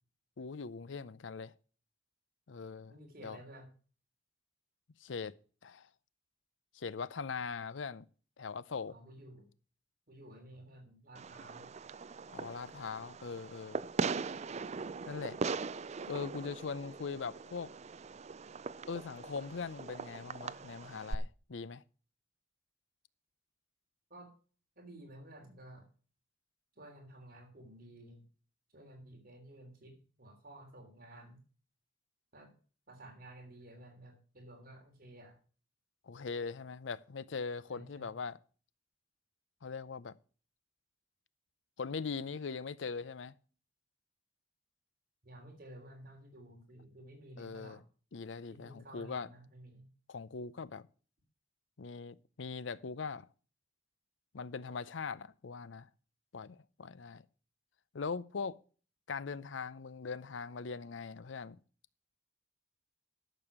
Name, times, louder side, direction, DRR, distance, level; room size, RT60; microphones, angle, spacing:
voice 1, 0.4-1.5 2.5-2.9 3.2-3.4 5.0-5.4 5.6-5.9 6.7-8.1 8.4-8.9 12.3-13.8 15.1-15.4 16.1-17.7 18.9-21.8 36.0-38.4 39.6-40.1 41.8-43.3 47.4-47.8 48.1-49.3 50.1-50.9 51.8-53.3 54.3-55.9 56.3-57.2 57.9-58.6 59.1-61.6, left 5 dB, 85° left, 0.6 m, -41 dB
voice 2, 2.9-3.7 8.9-9.5 10.1-11.7 24.1-24.3 24.7-25.9 26.7-28.2 28.7-31.4 32.3-32.5 32.9-35.4 37.7-38.1 45.2-47.8 48.5-49.9, right 1 dB, 50° right, 3.3 m, -53 dB
Fireworks, 11.2-21.2, right 4 dB, 35° right, 0.4 m, -40 dB
12.0 x 7.0 x 5.9 m
head